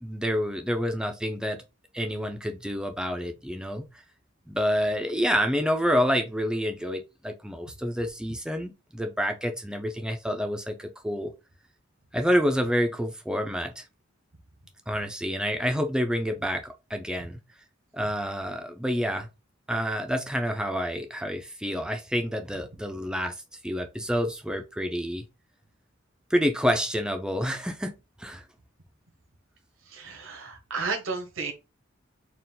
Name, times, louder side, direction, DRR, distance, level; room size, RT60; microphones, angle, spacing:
voice 1, 0.0-1.6 1.9-3.8 4.5-11.3 12.1-13.8 14.9-17.4 17.9-19.3 19.7-23.3 23.6-25.2 26.3-28.4, equal, 5° right, 0.5 m, -28 dB
voice 2, 29.9-31.5, right 4 dB, 80° right, 1.0 m, -32 dB
4.5 x 2.4 x 3.7 m
head